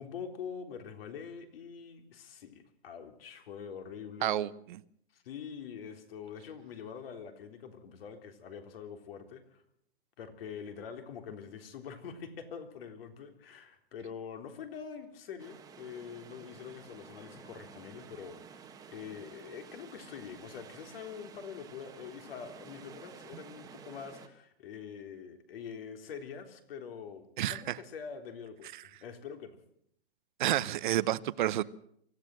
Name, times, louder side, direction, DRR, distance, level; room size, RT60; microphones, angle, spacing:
voice 1, 0.0-4.4 5.1-9.6 10.2-29.6, left 7 dB, 60° left, 6 dB, 3.7 m, -45 dB
voice 2, 4.2-4.8 27.4-27.8 28.7-28.8 30.4-31.6, right 13 dB, 45° right, 17 dB, 0.9 m, -30 dB
sound 1, 15.4-24.3, right 6 dB, 10° right, 1.4 m, -52 dB
24.0 x 15.0 x 7.7 m, 0.71 s
hypercardioid pair, 150°, 33 cm